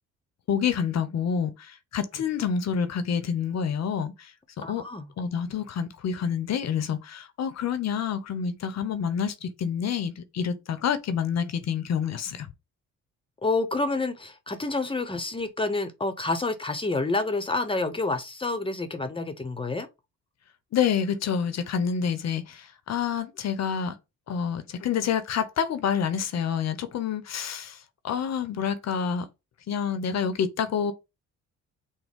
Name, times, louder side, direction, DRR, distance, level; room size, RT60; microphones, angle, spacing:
voice 1, 0.5-4.1 4.7-4.8 5.2-12.5 20.7-24.0 24.3-27.8 28.0-29.3 29.7-30.9, left 7 dB, 60° left, 0.8 m, -28 dB
voice 2, 4.6-5.1 13.4-19.9, left 3 dB, 15° left, 0.9 m, -28 dB
6.3 x 2.2 x 3.6 m
cardioid pair, 90°, 30 cm